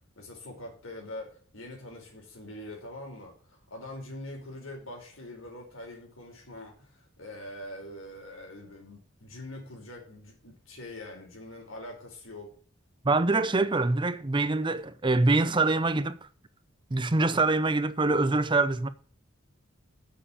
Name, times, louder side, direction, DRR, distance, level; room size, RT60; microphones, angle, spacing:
voice 1, 0.1-12.5, left 1 dB, 85° left, 4.8 m, -43 dB
voice 2, 13.0-16.3 16.9-18.9, right 3 dB, 25° right, 0.6 m, -25 dB
7.6 x 7.4 x 8.4 m
head